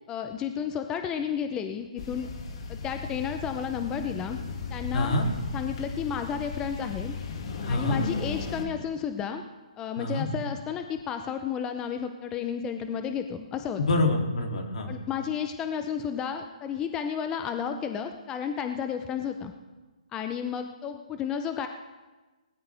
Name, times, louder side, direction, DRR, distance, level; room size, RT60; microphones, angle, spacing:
voice 1, 0.1-2.3 2.7-4.4 4.7-5.2 5.5-7.1 7.7-9.4 9.8-13.8 14.9-19.5 20.1-21.7, left 8 dB, 15° left, 7 dB, 0.7 m, -32 dB
sound 1, 2.0-8.6, left 4 dB, 50° left, 2.2 m, -36 dB
voice 2, 4.9-5.3 7.6-8.1 10.0-10.3 13.8-14.9, left 2 dB, 70° left, 2 dB, 3.0 m, -26 dB
20.0 x 13.5 x 3.5 m, 1.2 s
hypercardioid pair, 150°, 4 cm